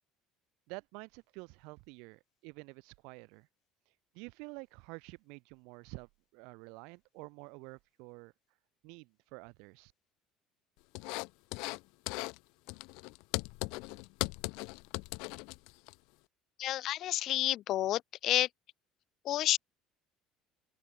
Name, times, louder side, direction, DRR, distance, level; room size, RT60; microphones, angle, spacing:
voice 1, 0.7-3.5 4.2-8.3 8.8-9.9, right 30 dB, 80° right, 1.8 m, -49 dB
sound 1, 10.9-11.8 12.1-12.4 12.7-15.9, left 28 dB, 80° left, 1.1 m, -38 dB
voice 2, 16.6-18.5 19.3-19.6, left 13 dB, 55° left, 0.4 m, -30 dB
open air
cardioid pair, 140°, 0 cm